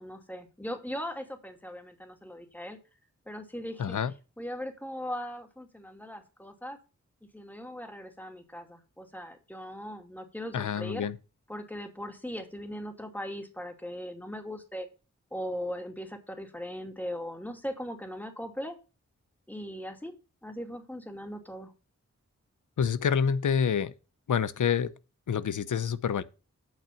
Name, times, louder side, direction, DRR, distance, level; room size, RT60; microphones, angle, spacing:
voice 1, 0.0-2.8 3.3-4.0 4.4-6.8 7.2-11.1 11.5-14.9 15.3-18.8 19.5-20.1 20.4-21.7, equal, 5° left, 2.4 m, -39 dB
voice 2, 3.8-4.1 10.5-11.2 22.8-23.9 24.3-24.9 25.3-26.2, left 7 dB, 85° left, 0.7 m, -27 dB
8.7 x 6.0 x 6.9 m
cardioid pair, 55°, 30 cm